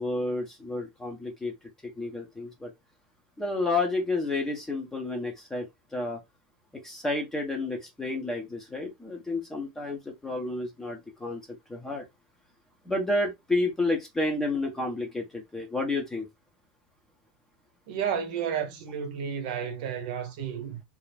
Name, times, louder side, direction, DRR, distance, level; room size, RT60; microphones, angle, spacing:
voice 1, 0.0-1.5 2.0-2.7 3.4-5.7 5.9-6.2 6.8-11.4 11.7-12.0 12.8-16.3, left 2 dB, 5° left, 0.7 m, -30 dB
voice 2, 17.9-20.8, right 8 dB, 60° right, 0.7 m, -32 dB
2.4 x 2.1 x 3.2 m
supercardioid pair, 160°, 5 cm